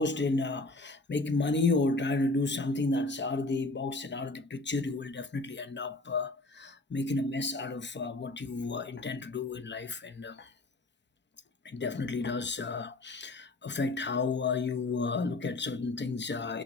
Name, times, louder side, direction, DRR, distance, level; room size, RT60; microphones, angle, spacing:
voice 1, 0.0-10.5 11.6-16.6, left 3 dB, 25° left, 0.8 m, -32 dB
6.2 x 2.5 x 2.6 m
cardioid pair, 65°, 41 cm